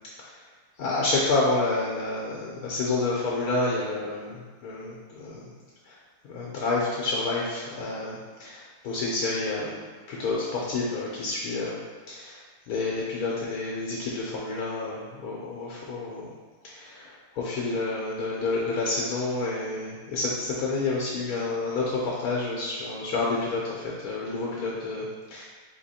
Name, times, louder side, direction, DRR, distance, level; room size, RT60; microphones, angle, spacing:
voice 1, 0.8-5.5 5.9-6.0 6.3-11.8 12.1-12.4 12.7-16.3 16.6-25.0 25.3-25.4, left 3 dB, 75° left, -4 dB, 1.2 m, -29 dB
3.8 x 2.9 x 4.2 m, 1.4 s
omnidirectional pair, 1.6 m